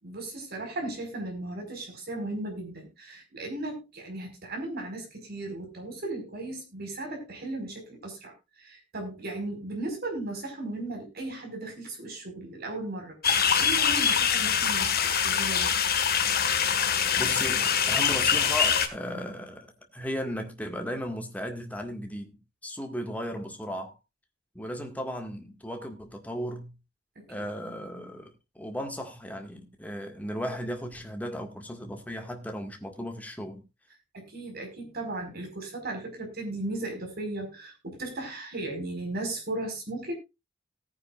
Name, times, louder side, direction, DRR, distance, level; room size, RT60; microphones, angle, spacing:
voice 1, 0.0-13.2 13.6-15.7 27.4-27.5 34.1-40.1, right 2 dB, 55° right, 5.0 m, -36 dB
sound 1, 13.2-18.9, left 7 dB, 55° left, 1.7 m, -24 dB
voice 2, 17.2-22.4 22.6-24.0 24.6-26.7 27.3-33.6, equal, 10° left, 1.9 m, -36 dB
18.0 x 9.6 x 2.5 m
head